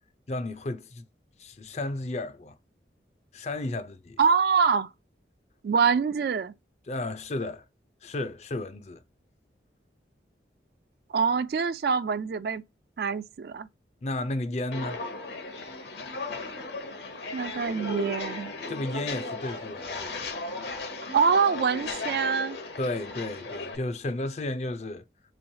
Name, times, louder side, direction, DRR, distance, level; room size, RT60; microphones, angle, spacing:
voice 1, 0.3-1.0 1.4-2.5 3.3-4.2 6.9-7.6 8.0-9.0 14.0-15.0 18.7-20.2 22.8-25.0, left 2 dB, 40° left, 0.4 m, -33 dB
voice 2, 4.2-4.9 5.6-6.5 11.1-12.6 13.0-13.7 17.3-18.5 21.1-22.6, right 6 dB, 55° right, 0.3 m, -25 dB
Walk footsteps, 14.7-23.8, left 3 dB, 65° left, 0.8 m, -36 dB
3.8 x 3.1 x 2.7 m
head